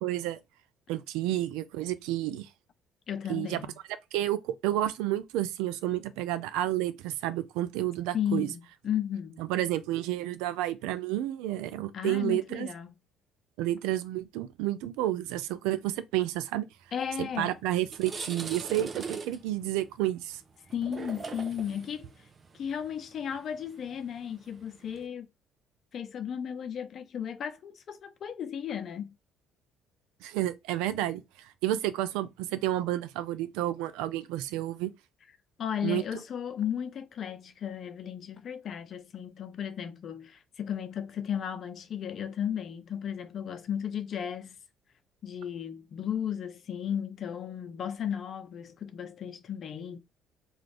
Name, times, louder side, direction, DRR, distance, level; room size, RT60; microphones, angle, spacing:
voice 1, 0.0-0.4 0.9-2.5 3.3-3.6 4.1-8.5 9.4-12.7 13.6-16.7 17.2-20.4 30.2-34.9 35.8-36.0, right 14 dB, 80° right, 0.3 m, -30 dB
voice 2, 3.1-3.8 8.1-9.4 11.9-12.9 16.9-17.6 20.7-22.1 22.5-25.3 25.9-29.2 35.6-44.6 45.2-50.0, left 8 dB, 55° left, 0.5 m, -35 dB
sound 1, 17.2-17.4 17.7-25.0, right 4 dB, 40° right, 0.6 m, -42 dB
2.5 x 2.3 x 3.2 m
supercardioid pair, 65°, 0 cm